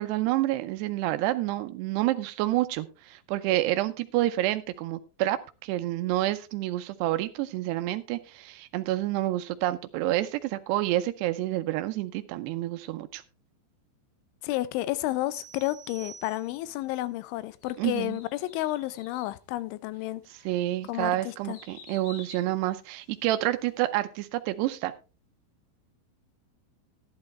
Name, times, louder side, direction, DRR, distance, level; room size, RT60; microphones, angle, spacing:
voice 1, 0.0-13.2 17.8-18.2 20.5-24.9, right 15 dB, 80° right, 2.5 m, -28 dB
voice 2, 14.4-20.2 20.9-21.6, left 16 dB, 85° left, 3.0 m, -31 dB
sound 1, 15.3-16.9, right 8 dB, 65° right, 2.9 m, -49 dB
sound 2, 17.6-19.4 20.0-20.1 20.7-23.5 23.8-23.9, left 4 dB, 50° left, 4.4 m, -51 dB
12.0 x 11.5 x 3.2 m
omnidirectional pair, 5.4 m